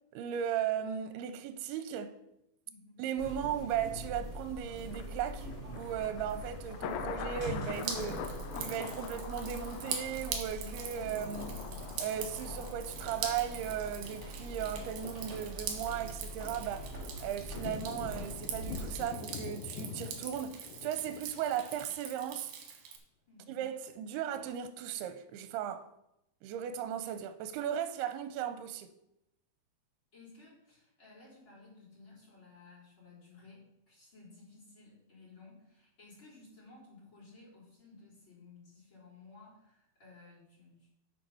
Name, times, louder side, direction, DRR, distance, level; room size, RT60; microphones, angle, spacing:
voice 1, 0.1-2.2 3.0-5.5 5.7-8.2 8.5-11.6 12.0-22.5 23.5-25.9 26.4-28.9, right 9 dB, 85° right, 2.6 m, -36 dB
voice 2, 2.7-3.0 23.3-23.6 30.1-40.9, left 3 dB, 30° left, 4.4 m, -56 dB
sound 1, 3.2-19.0, right 1 dB, 15° right, 3.9 m, -43 dB
Thunder, 4.9-22.0 22.4-22.5, left 8 dB, 85° left, 2.1 m, -45 dB
Drip, 7.7-23.0, right 7 dB, 70° right, 2.7 m, -43 dB
8.8 x 6.6 x 5.6 m
omnidirectional pair, 4.6 m